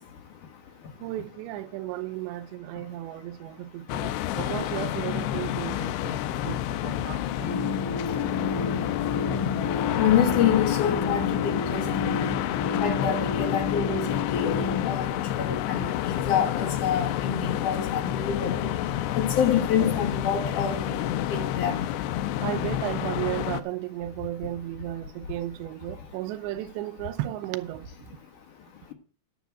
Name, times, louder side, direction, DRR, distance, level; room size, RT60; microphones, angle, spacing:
voice 1, 1.0-7.6 22.4-27.9, right 15 dB, 80° right, 2.9 m, -34 dB
sound 1, 3.9-23.6, left 12 dB, 80° left, 2.6 m, -29 dB
sound 2, 7.4-14.8, left 4 dB, 5° left, 2.1 m, -31 dB
voice 2, 10.0-12.2 12.8-15.1 15.4-18.7 19.2-21.1 21.3-21.8, left 8 dB, 60° left, 2.2 m, -27 dB
10.5 x 6.1 x 8.0 m
omnidirectional pair, 5.2 m